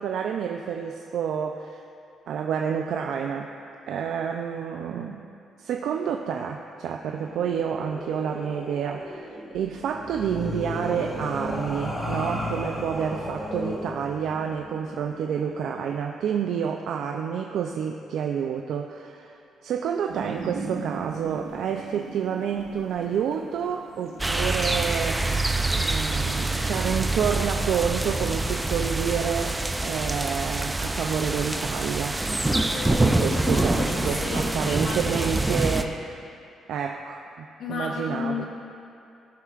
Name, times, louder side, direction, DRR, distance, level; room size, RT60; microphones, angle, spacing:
voice 1, 0.0-1.8 2.3-3.5 3.9-5.2 5.6-25.4 25.7-32.2 33.0-36.0 36.7-38.4, right 7 dB, 75° right, 2 dB, 0.4 m, -29 dB
sound 1, 7.0-16.0, left 1 dB, 15° left, 1.8 m, -35 dB
sound 2, 20.1-28.2, right 4 dB, 90° right, 1.1 m, -40 dB
sound 3, 24.2-35.8, right 2 dB, 15° right, 0.5 m, -26 dB
voice 2, 32.5-35.3 37.6-38.5, left 4 dB, 65° left, -1 dB, 1.1 m, -33 dB
16.0 x 5.7 x 2.4 m, 2.6 s
cardioid pair, 90°, 0 cm